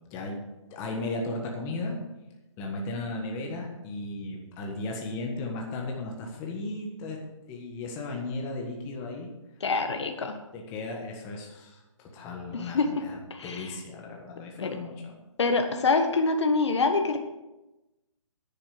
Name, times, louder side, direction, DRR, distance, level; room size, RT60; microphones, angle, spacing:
voice 1, 0.1-0.4 0.7-1.9 2.6-7.2 7.5-9.3 10.5-15.1, left 2 dB, 15° left, 0 dB, 1.5 m, -35 dB
voice 2, 9.6-10.3 12.5-12.9 13.3-13.7 14.6-14.8 15.4-17.2, left 3 dB, 55° left, 5 dB, 1.5 m, -25 dB
11.0 x 10.5 x 4.9 m, 1.0 s
hypercardioid pair, 160°, 17 cm